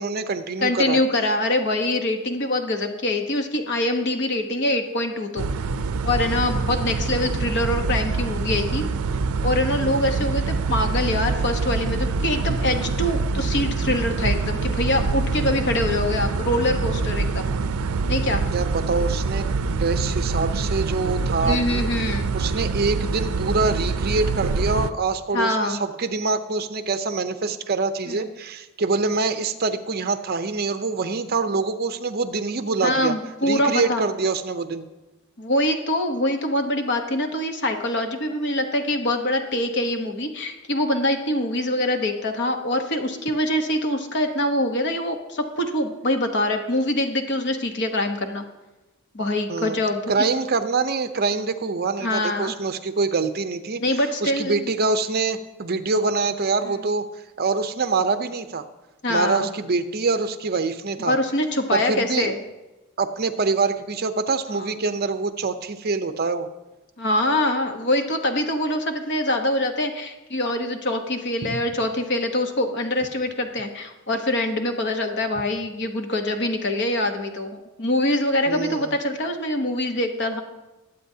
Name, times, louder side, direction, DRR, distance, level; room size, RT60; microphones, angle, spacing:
voice 1, 0.0-1.0 18.5-19.5 19.8-21.9 22.3-33.1 33.4-34.9 49.5-49.8 50.1-53.8 54.2-57.0 57.4-58.6 59.1-61.2 61.7-62.3 63.0-66.5 71.4-71.6 78.5-78.9, right 4 dB, 45° right, 9 dB, 0.7 m, -25 dB
voice 2, 0.6-5.5 6.0-8.8 9.4-17.5 18.1-18.4 21.4-22.3 25.3-25.8 28.1-28.2 32.8-34.1 35.4-48.4 49.1-50.3 52.0-52.5 53.8-54.7 56.6-56.8 59.0-59.5 61.1-62.4 64.5-64.7 67.0-80.4, left 1 dB, 55° left, 6 dB, 1.1 m, -24 dB
sound 1, 5.4-24.9, right 4 dB, 80° right, 0.5 m, -25 dB
20.5 x 8.4 x 2.8 m, 1.1 s
head